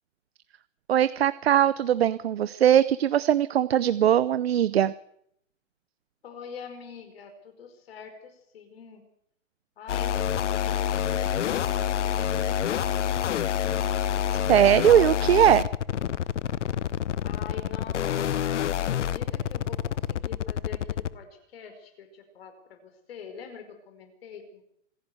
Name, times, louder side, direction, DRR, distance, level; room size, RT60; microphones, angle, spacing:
voice 1, 0.9-4.9 14.5-15.7, right 10 dB, 50° right, 16 dB, 0.7 m, -20 dB
voice 2, 6.2-9.0 9.8-11.7 17.2-18.2 18.7-24.6, left 6 dB, 50° left, 7 dB, 5.1 m, -45 dB
sound 1, 9.9-21.1, left 9 dB, 65° left, 0.9 m, -27 dB
25.5 x 11.0 x 9.5 m, 0.72 s
hypercardioid pair, 175°, 39 cm